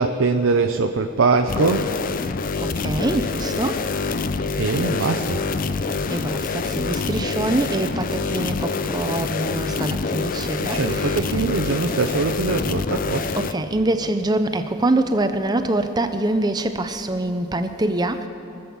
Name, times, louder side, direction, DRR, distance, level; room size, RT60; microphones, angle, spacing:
voice 1, 0.0-1.9 4.6-5.5 10.6-13.3, right 4 dB, 90° right, 6 dB, 0.6 m, -22 dB
sound 1, 1.5-13.5, left 4 dB, 45° left, 0.5 m, -26 dB
voice 2, 2.6-3.8 6.1-11.2 13.4-18.3, right 2 dB, 20° right, 8 dB, 0.6 m, -24 dB
23.0 x 7.8 x 7.1 m, 2.9 s
head